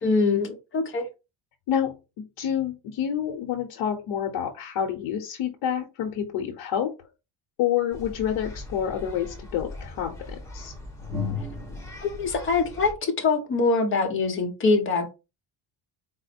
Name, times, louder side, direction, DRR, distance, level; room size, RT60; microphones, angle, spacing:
voice 1, 0.0-1.1 12.0-15.1, left 3 dB, 25° left, 0.8 m, -24 dB
voice 2, 1.7-6.9 7.6-10.7, left 9 dB, 65° left, 0.8 m, -28 dB
sound 1, 7.9-12.9, left 3 dB, 5° left, 1.0 m, -37 dB
4.2 x 2.1 x 4.1 m
cardioid pair, 165°, 48 cm